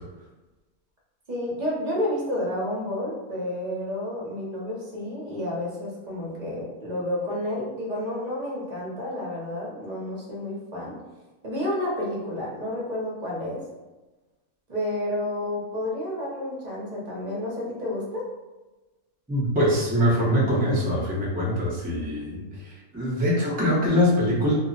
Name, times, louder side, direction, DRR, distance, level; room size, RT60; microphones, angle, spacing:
voice 1, 1.3-11.0 11.4-13.6 14.7-18.3, left 1 dB, 40° right, -5 dB, 0.7 m, -30 dB
voice 2, 19.3-24.5, equal, 10° right, -6 dB, 0.4 m, -23 dB
2.4 x 2.1 x 3.8 m, 1.1 s
omnidirectional pair, 1.5 m